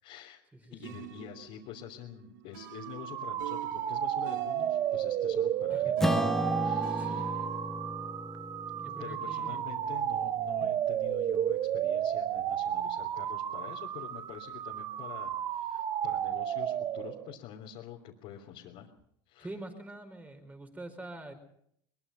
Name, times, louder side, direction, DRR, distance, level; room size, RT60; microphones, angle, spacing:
voice 1, 0.0-0.4 0.7-6.3 6.6-7.4 9.0-18.9 19.3-19.5, left 10 dB, 60° left, -2 dB, 3.3 m, -46 dB
voice 2, 0.5-0.9 5.7-5.9 7.0-7.2 8.7-9.6 10.6-10.7 19.4-21.3, right 2 dB, 15° right, 7 dB, 5.2 m, -45 dB
sound 1, 0.8-7.7, right 13 dB, 90° right, 1.0 m, -48 dB
sound 2, 2.7-17.3, right 10 dB, 45° right, 1.0 m, -32 dB
Acoustic guitar / Strum, 6.0-10.7, left 1 dB, 5° left, 1.2 m, -34 dB
22.5 x 21.5 x 5.7 m, 0.71 s
supercardioid pair, 100°, 10 cm